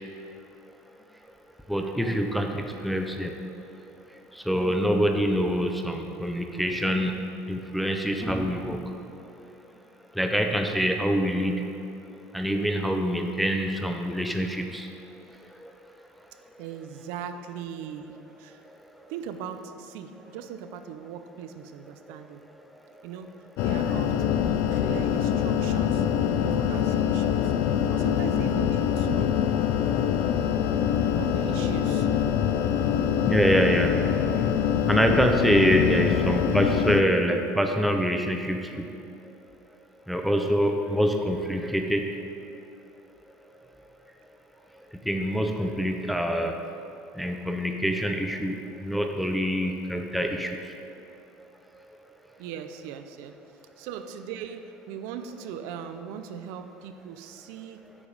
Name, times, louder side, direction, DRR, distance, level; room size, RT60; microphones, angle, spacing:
voice 1, 1.7-3.3 4.5-7.2 7.5-8.8 10.2-11.8 12.3-14.9 33.3-33.9 34.9-38.7 40.1-42.1 45.1-46.6 47.2-50.5, equal, ahead, 3 dB, 0.4 m, -25 dB
voice 2, 16.6-18.6 19.1-22.4 23.0-26.1 26.4-29.4 31.2-32.1 52.4-53.4 53.8-57.8, right 8 dB, 75° right, 9 dB, 0.5 m, -39 dB
sound 1, 23.6-37.0, left 9 dB, 60° left, 0.4 m, -24 dB
8.4 x 5.1 x 5.2 m, 2.6 s
cardioid pair, 150°, 4 cm